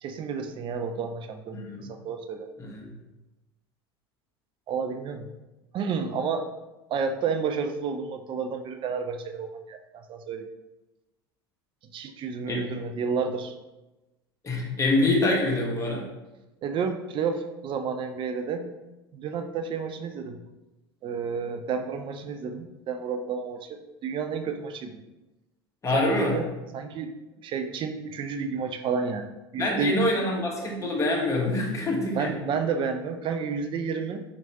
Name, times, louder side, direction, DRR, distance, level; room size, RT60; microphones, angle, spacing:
voice 1, 0.0-2.5 4.7-5.3 5.7-6.5 6.9-10.5 11.9-13.5 16.6-18.7 19.1-20.4 21.0-25.0 25.9-26.5 26.7-27.1 27.4-30.0 32.1-34.2, right 5 dB, 40° right, 7 dB, 0.4 m, -31 dB
voice 2, 1.5-1.9 2.6-2.9 12.5-12.6 14.4-16.1 25.8-26.3 29.6-32.3, left 2 dB, 25° left, -2 dB, 1.2 m, -25 dB
4.3 x 3.1 x 2.9 m, 1.0 s
hypercardioid pair, 75°, 13 cm